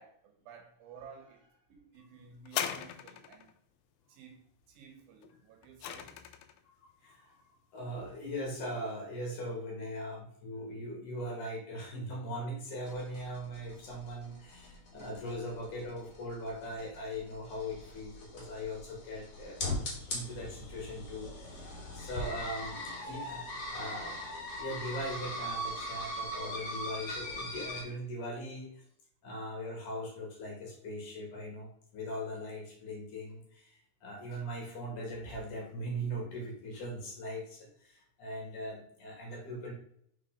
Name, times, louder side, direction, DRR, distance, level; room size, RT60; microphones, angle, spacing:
voice 1, 0.0-3.5 4.1-6.1, right 6 dB, 75° right, 2.5 m, -54 dB
sound 1, 2.5-3.5 5.2-6.6 7.4-7.5, left 10 dB, 80° left, 2.1 m, -38 dB
voice 2, 6.6-7.4 7.7-19.8 20.1-28.7 29.2-39.7, equal, 60° left, 2.6 m, -40 dB
sound 2, 12.8-27.8, left 1 dB, 45° left, 2.4 m, -40 dB
5.7 x 3.9 x 4.9 m
omnidirectional pair, 4.6 m